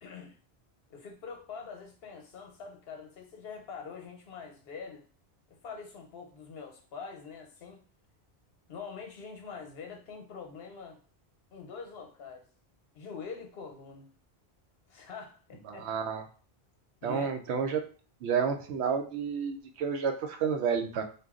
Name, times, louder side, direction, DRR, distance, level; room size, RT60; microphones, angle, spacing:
voice 1, 0.0-0.4 0.9-5.1 5.5-7.8 8.7-11.0 11.5-12.5 12.9-14.1 14.9-15.9 17.0-17.3, left 5 dB, 70° left, 3 dB, 0.9 m, -44 dB
voice 2, 15.7-16.2 17.0-17.8 18.2-21.0, right 6 dB, 85° right, 5 dB, 0.8 m, -30 dB
2.6 x 2.2 x 3.6 m, 0.39 s
omnidirectional pair, 1.1 m